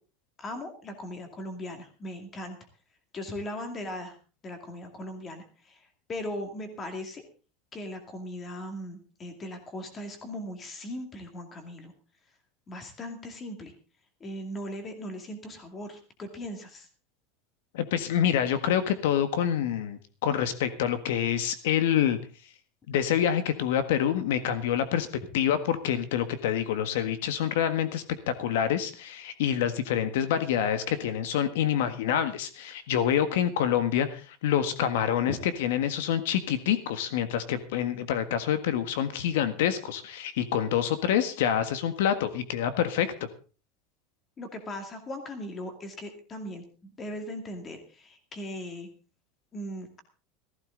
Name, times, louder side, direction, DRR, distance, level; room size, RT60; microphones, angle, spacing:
voice 1, 0.4-2.6 3.1-4.2 4.4-5.8 6.1-7.2 7.7-11.9 12.7-13.7 14.2-16.9 44.4-48.9 49.5-50.0, left 1 dB, 15° left, 6 dB, 2.3 m, -38 dB
voice 2, 17.7-22.2 22.9-25.1 25.3-43.3, left 9 dB, 75° left, 11 dB, 1.6 m, -27 dB
16.0 x 14.5 x 3.9 m, 0.35 s
supercardioid pair, 180°, 0 cm